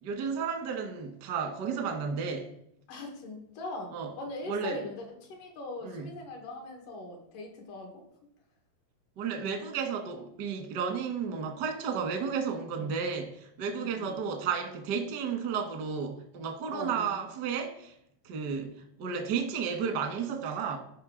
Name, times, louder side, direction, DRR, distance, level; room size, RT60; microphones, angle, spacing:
voice 1, 0.0-2.5 3.9-4.1 4.5-4.8 5.8-6.1 9.2-17.9 18.2-18.7 19.0-20.8, right 6 dB, 70° right, 5 dB, 1.0 m, -33 dB
voice 2, 2.9-3.9 4.2-7.9 12.8-13.0 13.7-14.2 16.7-17.2, left 2 dB, 80° left, 1 dB, 3.2 m, -41 dB
12.0 x 5.1 x 3.8 m, 0.75 s
omnidirectional pair, 3.7 m